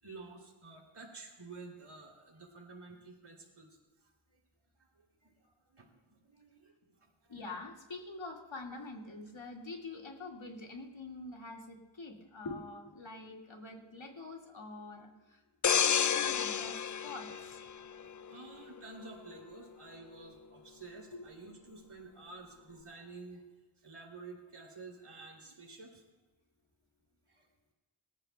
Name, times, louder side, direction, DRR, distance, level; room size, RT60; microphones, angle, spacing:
voice 1, 0.0-3.7 5.2-6.7 7.0-7.4 18.3-23.4 23.8-26.0 27.3-27.5, right 3 dB, 90° right, 0 dB, 3.1 m, -51 dB
voice 2, 7.3-15.4 15.8-17.6 21.1-21.3, left 3 dB, 65° left, 1 dB, 2.1 m, -45 dB
sound 1, 15.6-18.3 18.8-19.0, left 8 dB, 40° left, 0.4 m, -31 dB
24.5 x 13.5 x 2.3 m, 1.2 s
wide cardioid pair, 60°, 49 cm